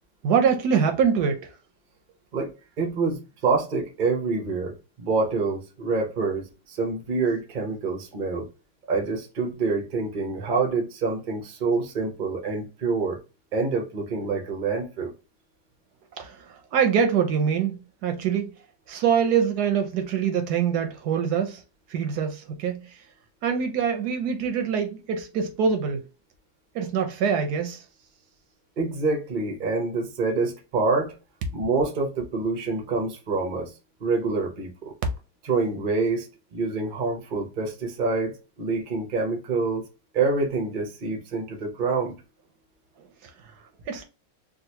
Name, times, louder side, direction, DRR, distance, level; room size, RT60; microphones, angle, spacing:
voice 1, 0.2-1.5 16.2-16.4 16.7-18.5 18.9-21.6 21.9-22.9 23.4-26.0 26.7-27.8 43.9-44.0, right 7 dB, 65° right, 1.0 m, -24 dB
voice 2, 2.3-8.5 8.9-13.2 13.5-15.1 28.8-31.1 31.5-33.7 34.0-34.9 35.4-36.3 36.5-38.3 38.6-39.8 40.1-42.1, right 4 dB, 50° right, 0.5 m, -26 dB
3.8 x 2.4 x 2.8 m
omnidirectional pair, 2.1 m